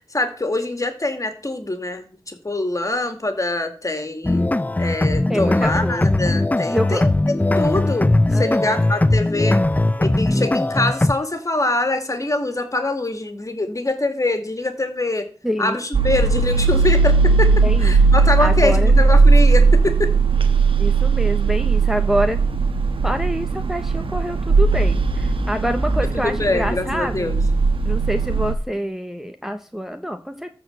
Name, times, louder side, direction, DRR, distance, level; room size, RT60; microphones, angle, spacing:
voice 1, 0.1-4.4 4.8-9.6 10.0-15.3 15.6-20.1 26.1-27.4, left 2 dB, 35° left, 7 dB, 2.3 m, -24 dB
sound 1, 4.2-11.1, left 2 dB, 15° left, 0.5 m, -19 dB
voice 2, 5.3-6.2 6.7-7.0 8.3-8.8 15.4-15.8 17.6-17.9 18.4-18.9 20.8-22.4 23.0-27.3 27.9-30.5, equal, 5° right, 6 dB, 1.0 m, -26 dB
sound 2, 15.9-28.5, right 4 dB, 75° right, 1.2 m, -17 dB
14.0 x 4.8 x 7.8 m, 0.39 s
wide cardioid pair, 60°, 9 cm